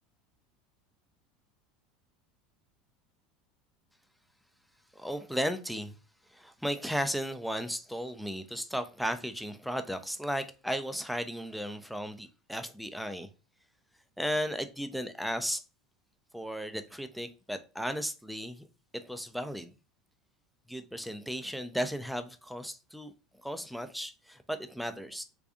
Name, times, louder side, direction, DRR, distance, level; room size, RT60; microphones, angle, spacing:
voice 1, 4.9-6.0 6.3-13.3 14.2-15.6 16.3-18.7 19.0-19.7 20.7-25.2, equal, ahead, 0.5 m, -35 dB
3.5 x 3.3 x 2.5 m
hypercardioid pair, 75°, 2 cm